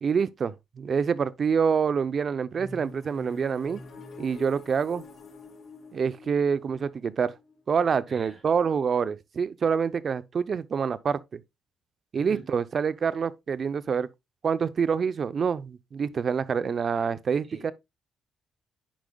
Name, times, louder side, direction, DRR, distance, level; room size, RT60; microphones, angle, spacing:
voice 1, 0.0-3.8 4.2-5.0 5.9-7.3 7.7-11.4 12.1-14.1 14.4-17.7, right 6 dB, 45° right, 0.6 m, -26 dB
sound 1, 2.5-8.3, left 3 dB, 60° left, 3.8 m, -47 dB
voice 2, 8.1-8.4 12.1-12.5 17.4-17.7, right 3 dB, 30° right, 2.9 m, -45 dB
10.0 x 4.8 x 2.3 m
cardioid pair, 90°, 0 cm